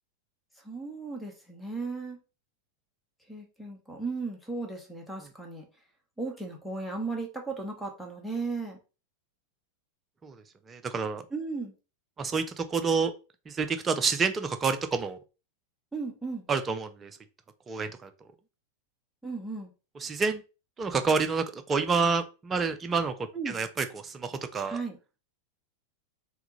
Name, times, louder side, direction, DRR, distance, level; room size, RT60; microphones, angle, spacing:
voice 1, 0.6-2.2 3.3-5.6 6.2-8.8 11.3-11.7 15.9-16.4 19.2-19.7 23.3-23.6 24.7-25.0, right 3 dB, ahead, 1 dB, 1.2 m, -35 dB
voice 2, 10.7-11.2 12.2-13.1 13.5-15.2 16.5-17.1 17.7-18.1 20.0-20.4 20.8-23.1 23.5-24.8, right 5 dB, 20° right, 9 dB, 0.5 m, -28 dB
3.5 x 3.5 x 3.0 m, 0.31 s
figure-of-eight pair, 90°, 0 cm